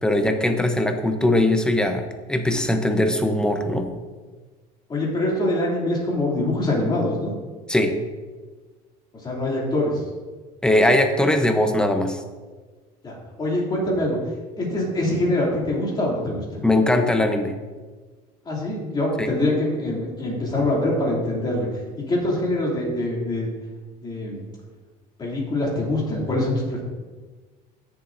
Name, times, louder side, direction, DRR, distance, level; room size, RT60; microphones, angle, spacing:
voice 1, 0.0-3.9 7.7-8.0 10.6-12.2 16.6-17.5 19.2-19.3, left 1 dB, 5° left, 6 dB, 0.7 m, -20 dB
voice 2, 4.9-7.3 9.1-10.0 13.0-14.2 14.6-16.6 18.4-23.5 24.0-24.4 25.2-26.8, left 1 dB, 25° left, -3 dB, 2.6 m, -24 dB
16.5 x 7.1 x 2.6 m, 1.4 s
cardioid pair, 155°, 18 cm